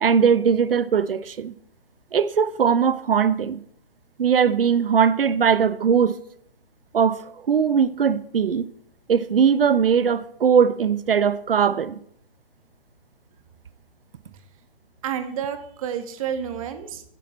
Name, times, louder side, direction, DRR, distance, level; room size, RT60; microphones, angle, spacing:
voice 1, 0.0-1.5 2.1-3.6 4.2-6.2 6.9-8.7 9.1-12.0, right 7 dB, 70° right, 0.7 m, -20 dB
voice 2, 15.0-17.0, right 8 dB, 35° right, 1.3 m, -30 dB
10.0 x 9.1 x 4.2 m
figure-of-eight pair, 135°, 30 cm